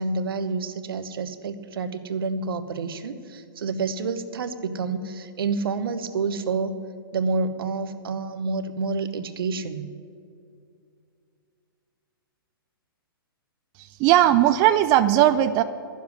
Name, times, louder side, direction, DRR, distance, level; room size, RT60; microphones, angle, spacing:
voice 1, 0.0-6.8 7.1-9.9, right 4 dB, 70° right, 11 dB, 1.0 m, -28 dB
voice 2, 13.8-15.6, right 13 dB, 30° right, 11 dB, 0.5 m, -18 dB
12.0 x 7.4 x 9.6 m, 2.4 s
hypercardioid pair, 125°, 12 cm